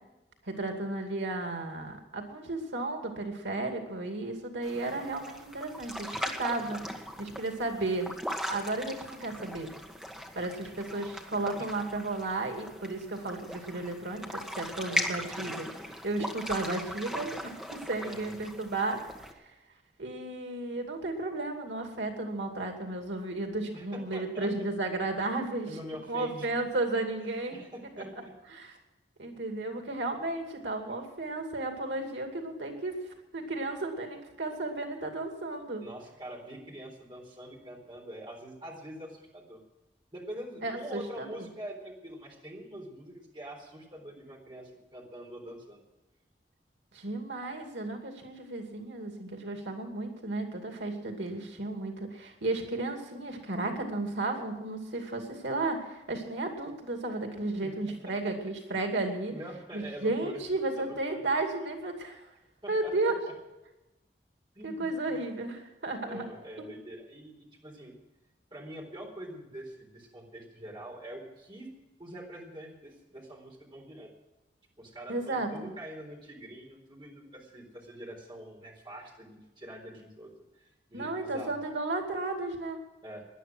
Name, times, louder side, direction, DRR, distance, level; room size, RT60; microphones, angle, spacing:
voice 1, 0.4-6.8 7.2-8.1 8.5-9.7 10.3-19.0 19.4-19.5 20.0-25.7 26.1-27.6 28.0-28.1 28.5-28.8 29.2-35.8 40.6-41.5 46.9-59.3 59.7-62.3 62.7-63.2 64.6-66.3 66.6-66.7 75.1-75.7 80.9-82.8, right 2 dB, 90° right, 4 dB, 2.5 m, -34 dB
sound 1, 4.6-19.3, equal, 5° right, 1.6 m, -39 dB
voice 2, 14.9-15.2 18.0-18.4 23.7-24.5 25.7-26.5 27.5-28.3 35.8-39.6 40.1-45.8 57.6-57.8 59.3-60.4 60.8-61.3 62.6-62.9 64.5-65.2 66.1-67.9 68.5-71.7 72.0-74.1 74.8-81.6 83.0-83.2, right 1 dB, 25° right, 0 dB, 3.9 m, -44 dB
18.5 x 11.0 x 6.2 m, 1.0 s
head